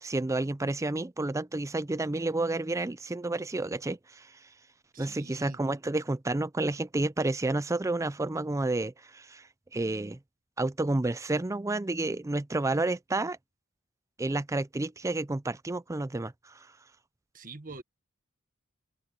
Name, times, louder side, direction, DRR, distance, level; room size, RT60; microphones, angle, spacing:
voice 1, 0.0-4.3 5.0-10.2 10.6-13.4 14.2-16.7, right 2 dB, 15° right, 0.4 m, -30 dB
voice 2, 4.9-5.6 17.3-17.8, right 3 dB, 40° right, 1.4 m, -45 dB
open air
head